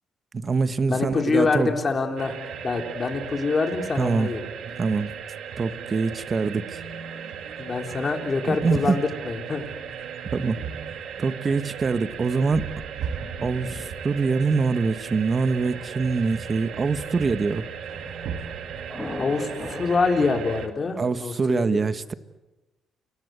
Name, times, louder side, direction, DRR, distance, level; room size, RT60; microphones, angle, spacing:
voice 1, 0.3-1.7 4.0-4.3 4.8-5.1 5.6-6.8 8.5-9.0 10.3-10.6 11.2-12.6 13.4-17.6 21.0-22.1, right 4 dB, 35° right, 1.4 m, -24 dB
voice 2, 0.9-2.4 2.6-4.4 7.6-9.7 19.2-21.7, left 4 dB, 35° left, 3.7 m, -25 dB
sound 1, 2.2-20.7, right 7 dB, 75° right, 2.3 m, -36 dB
Thunder, 11.6-20.6, left 1 dB, 10° left, 6.6 m, -42 dB
29.5 x 23.5 x 8.1 m
cardioid pair, 90°, 0 cm